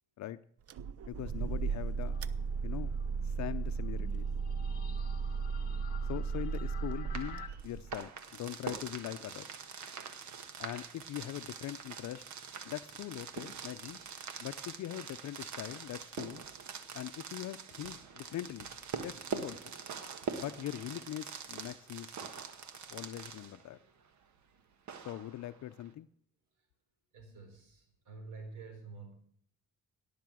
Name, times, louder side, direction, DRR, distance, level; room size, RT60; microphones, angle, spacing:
sound 1, 0.7-8.1, right 5 dB, 50° right, 0.7 m, -35 dB
voice 1, 1.1-2.2 2.6-2.9 3.2-4.3 6.0-9.5 10.6-12.2 12.6-14.0 14.4-16.4 16.9-18.7 19.0-19.6 20.3-22.3 22.9-23.8 25.0-26.1, left 13 dB, 65° left, 11 dB, 0.6 m, -42 dB
sound 2, 2.1-7.5, left 9 dB, 30° left, 1.6 m, -52 dB
sound 3, 7.0-23.8 24.9-25.9, right 6 dB, 70° right, 1.5 m, -44 dB
voice 2, 27.1-29.1, right 4 dB, 85° right, 4 dB, 4.1 m, -49 dB
17.5 x 6.8 x 6.2 m, 0.63 s
cardioid pair, 90°, 30 cm